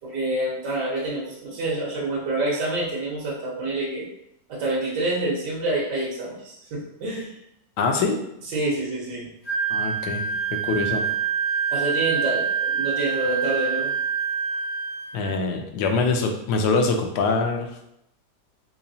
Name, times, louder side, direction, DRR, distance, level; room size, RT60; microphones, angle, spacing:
voice 1, 0.0-4.1 4.5-7.4 8.5-9.3 11.7-14.0, right 2 dB, 80° right, -4 dB, 1.6 m, -27 dB
voice 2, 7.8-8.2 9.7-10.2 10.5-11.0 15.1-17.8, left 4 dB, 80° left, 4 dB, 1.2 m, -24 dB
Wind instrument woodwind instrument, 9.5-15.3, right 6 dB, 35° left, 0.7 m, -26 dB
3.7 x 3.0 x 2.7 m, 0.78 s
omnidirectional pair, 1.8 m